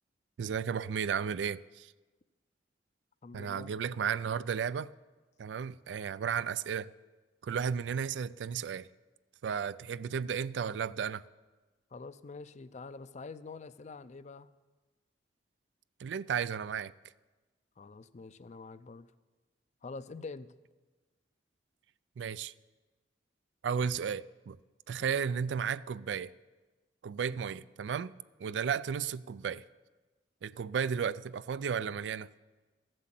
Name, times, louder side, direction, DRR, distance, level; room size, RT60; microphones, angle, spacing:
voice 1, 0.4-1.9 3.3-4.9 5.4-6.9 7.4-8.9 9.4-11.2 16.0-16.9 22.2-22.5 23.6-24.6 24.9-26.3 27.0-28.1 28.4-29.6 30.4-32.3, right 7 dB, 85° right, 0.3 m, -34 dB
voice 2, 3.2-3.7 11.9-14.5 17.8-19.1 19.8-20.5 25.0-25.2 27.3-27.4, left 4 dB, 40° left, 0.4 m, -46 dB
14.5 x 7.8 x 7.5 m
head